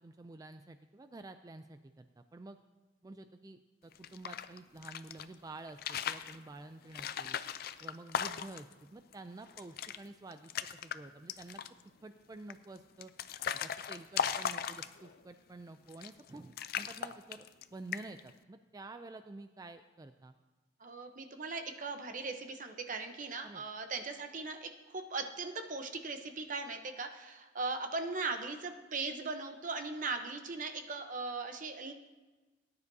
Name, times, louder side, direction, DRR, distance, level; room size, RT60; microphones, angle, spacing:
voice 1, 0.0-2.6 3.0-7.4 7.8-10.5 10.8-11.6 12.0-13.1 13.5-17.5 17.7-20.3 23.4-23.6, right 2 dB, 20° right, 9 dB, 0.3 m, -50 dB
sound 1, 3.9-5.3 5.7-6.4 6.9-8.7 9.1-9.2 9.5-10.0 10.3-11.0 11.3-11.8 12.5-15.2 15.9-16.3 16.6-17.6 17.9-18.3, left 8 dB, 55° left, 0.4 m, -37 dB
voice 2, 20.8-31.9, right 3 dB, 45° right, 7 dB, 0.8 m, -39 dB
18.0 x 9.6 x 2.7 m, 1.2 s
head